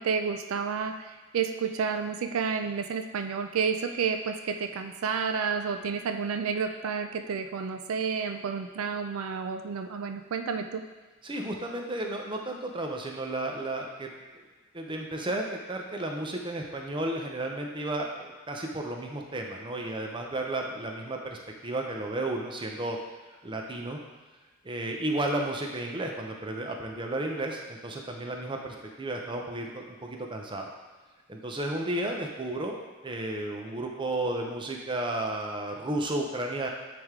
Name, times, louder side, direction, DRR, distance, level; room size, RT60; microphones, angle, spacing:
voice 1, 0.0-10.8, right 6 dB, 80° right, 7 dB, 0.4 m, -30 dB
voice 2, 11.2-14.4 14.7-23.0 23.4-24.0 24.6-30.7 31.3-32.8 33.0-36.7, right 1 dB, 25° right, 1 dB, 0.7 m, -33 dB
9.3 x 3.4 x 3.6 m, 1.3 s
head